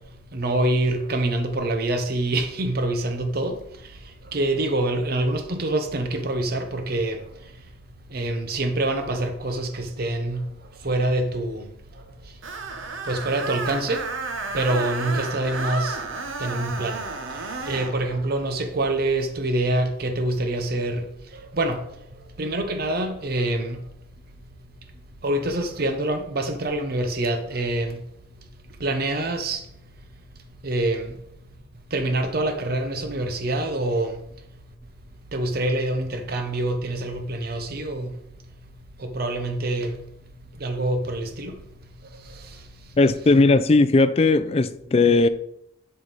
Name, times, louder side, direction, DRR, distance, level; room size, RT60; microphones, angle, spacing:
voice 1, 0.3-3.6 4.3-7.2 8.1-10.4 10.8-11.7 13.0-14.0 14.5-16.0 16.4-17.0 17.7-21.0 21.3-21.8 22.4-23.8 25.2-28.0 28.8-29.6 30.6-31.1 31.9-34.2 35.3-38.1 39.0-39.9 40.6-41.6, right 2 dB, 50° right, 0.7 m, -25 dB
Screech, 12.4-18.0, right 3 dB, 80° right, 0.9 m, -32 dB
voice 2, 43.0-45.3, left 3 dB, 30° left, 0.4 m, -17 dB
7.8 x 5.5 x 4.1 m
head